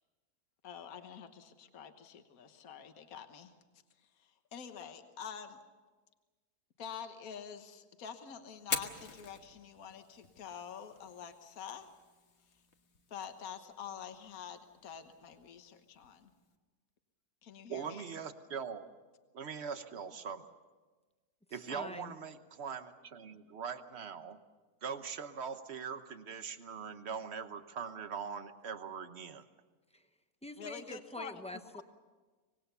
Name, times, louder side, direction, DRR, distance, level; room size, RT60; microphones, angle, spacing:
voice 1, 0.6-3.5 4.1-5.6 6.8-11.9 13.1-16.3 17.4-18.2 30.6-31.6, left 7 dB, 65° left, 7 dB, 1.6 m, -47 dB
Fire, 8.6-16.6, left 4 dB, 45° left, 1.5 m, -46 dB
voice 2, 17.7-18.9 19.3-20.4 21.5-24.4 24.8-29.4, right 6 dB, 45° right, 10 dB, 1.2 m, -42 dB
voice 3, 21.5-22.2 29.9-30.1 30.4-31.8, left 1 dB, 5° left, 8 dB, 0.7 m, -45 dB
25.0 x 19.5 x 6.9 m, 1.3 s
omnidirectional pair, 1.7 m